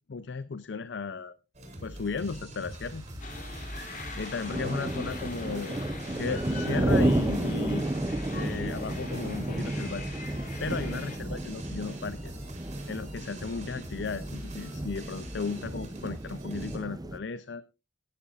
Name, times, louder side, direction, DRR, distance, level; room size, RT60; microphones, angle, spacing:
voice 1, 0.1-1.3 1.8-3.1 4.1-5.8 6.1-7.9 8.3-10.1 10.6-12.3 12.9-17.6, left 4 dB, 70° left, 14 dB, 0.6 m, -35 dB
sound 1, 1.5-16.8, right 1 dB, 40° right, 4.6 m, -43 dB
sound 2, 2.7-2.9 3.6-3.8 4.2-17.2, right 1 dB, 20° right, 0.6 m, -32 dB
sound 3, 3.2-11.2, left 2 dB, 45° left, 3.0 m, -43 dB
18.0 x 11.0 x 2.5 m, 0.27 s
head